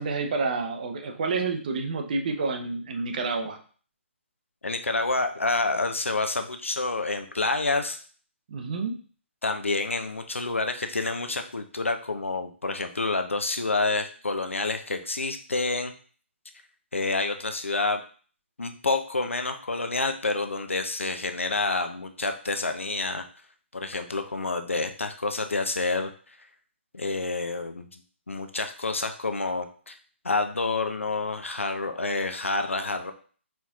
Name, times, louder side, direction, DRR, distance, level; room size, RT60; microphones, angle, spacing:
voice 1, 0.0-3.6 8.5-9.0, right 4 dB, 40° right, 5 dB, 0.6 m, -29 dB
voice 2, 4.6-8.0 9.4-15.9 16.9-18.0 18.6-23.3 23.7-26.4 26.9-28.0 28.3-29.9 30.2-33.1, left 3 dB, 75° left, 6 dB, 0.6 m, -28 dB
4.4 x 4.2 x 2.4 m, 0.41 s
figure-of-eight pair, 135°, 7 cm